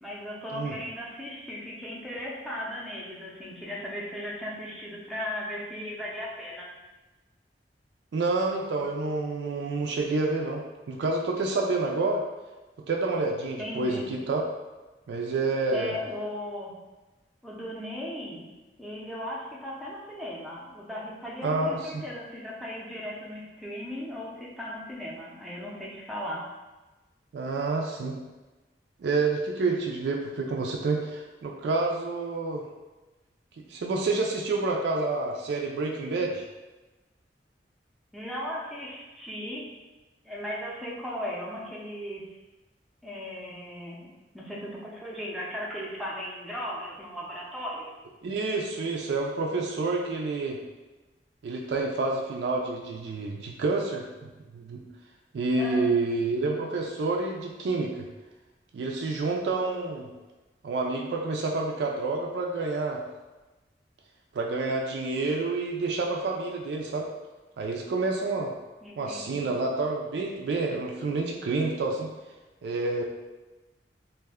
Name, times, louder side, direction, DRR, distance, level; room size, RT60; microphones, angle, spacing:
voice 1, 0.0-6.7 13.6-14.1 15.7-16.7 17.4-18.5 18.8-26.4 38.1-39.7 40.2-42.2 43.0-44.1 44.3-47.9 55.6-55.9 68.8-69.5, equal, ahead, -5 dB, 0.5 m, -37 dB
voice 2, 8.1-12.2 12.9-14.4 15.1-15.9 21.4-22.0 27.3-28.2 29.0-32.6 33.7-36.4 48.2-50.6 51.4-54.8 55.3-58.1 58.7-60.1 60.6-63.0 64.3-67.1 67.6-68.5 69.0-72.1 72.6-73.0, right 3 dB, 70° right, 0 dB, 0.3 m, -28 dB
2.5 x 2.1 x 3.4 m, 1.1 s
head